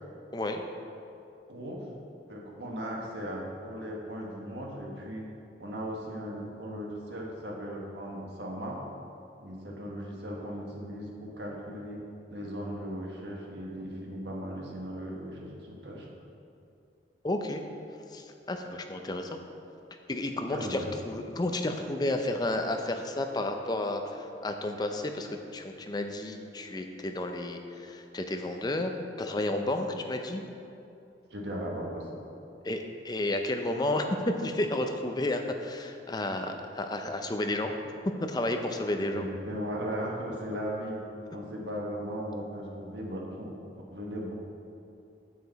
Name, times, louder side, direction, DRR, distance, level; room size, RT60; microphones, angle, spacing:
voice 1, 0.3-0.6 17.2-17.6 18.1-19.4 20.1-28.9 29.2-30.4 32.6-37.7 38.2-39.3, left 1 dB, 25° left, 5 dB, 0.5 m, -31 dB
voice 2, 1.5-1.9 2.3-8.9 9.4-16.1 20.5-20.9 31.3-32.2 39.1-43.6 43.9-44.3, equal, 80° right, -2 dB, 1.5 m, -37 dB
8.5 x 6.9 x 4.1 m, 2.7 s
head